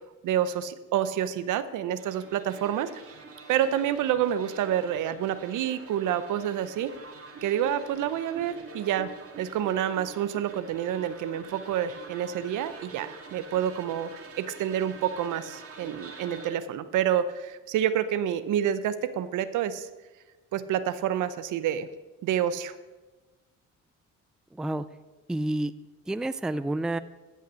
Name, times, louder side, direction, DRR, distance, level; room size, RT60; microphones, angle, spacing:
voice 1, 0.2-2.9 3.5-6.9 7.4-9.1 9.4-14.1 14.4-19.9 20.5-21.9 22.2-22.7, right 10 dB, 80° right, 13 dB, 0.7 m, -28 dB
sound 1, 2.0-16.5, right 4 dB, 50° right, 2.2 m, -46 dB
voice 2, 24.5-24.9 25.3-25.7 26.1-27.0, right 1 dB, ahead, 14 dB, 0.3 m, -29 dB
14.5 x 5.6 x 6.2 m, 1.2 s
cardioid pair, 90°, 30 cm